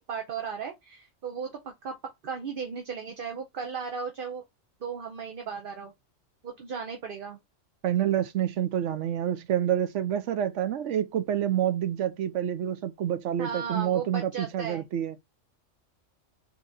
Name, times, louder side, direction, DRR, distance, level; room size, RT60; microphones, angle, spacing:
voice 1, 0.0-4.4 4.8-5.9 6.4-7.4 13.4-14.9, right 6 dB, 50° right, 0.9 m, -36 dB
voice 2, 7.8-15.1, right 10 dB, 70° right, 0.9 m, -28 dB
3.9 x 3.0 x 3.9 m
omnidirectional pair, 1.3 m